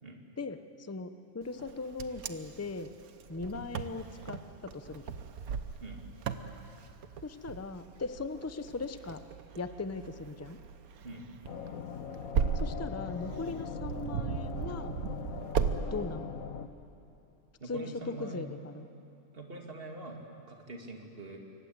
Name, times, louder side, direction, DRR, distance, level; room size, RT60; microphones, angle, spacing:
voice 1, 0.4-2.9 3.3-5.1 7.2-9.2 9.6-10.6 12.5-14.9 15.9-16.3 17.7-18.9, left 3 dB, 15° left, 11 dB, 0.6 m, -39 dB
Wind, 1.6-15.8, right 7 dB, 90° right, 1.5 m, -37 dB
sound 1, 11.5-16.7, left 7 dB, 80° left, 1.5 m, -41 dB
voice 2, 17.6-18.4 19.3-20.2 20.5-21.4, right 2 dB, 40° right, 2 dB, 2.8 m, -44 dB
27.0 x 24.0 x 8.2 m, 2.8 s
omnidirectional pair, 1.5 m